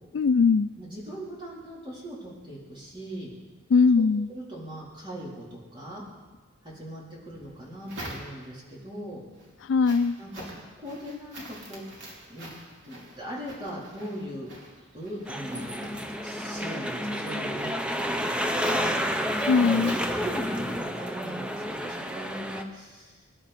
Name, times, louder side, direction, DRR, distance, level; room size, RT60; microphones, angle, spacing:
voice 1, 0.1-0.7 3.7-4.3 9.7-10.1 19.4-19.9, left 5 dB, 65° left, 14 dB, 0.3 m, -20 dB
voice 2, 0.8-3.3 4.0-6.0 6.6-9.2 10.2-11.8 12.3-12.5 12.9-14.5 14.9-15.7 16.2-17.7 18.0-19.0 19.7-23.2, equal, 25° right, -6 dB, 3.9 m, -39 dB
sound 1, 7.3-8.7 9.2-20.8, right 1 dB, 60° right, 3.5 m, -46 dB
sound 2, 15.3-22.6, equal, 5° right, 0.7 m, -30 dB
24.0 x 11.0 x 4.4 m, 1.4 s
head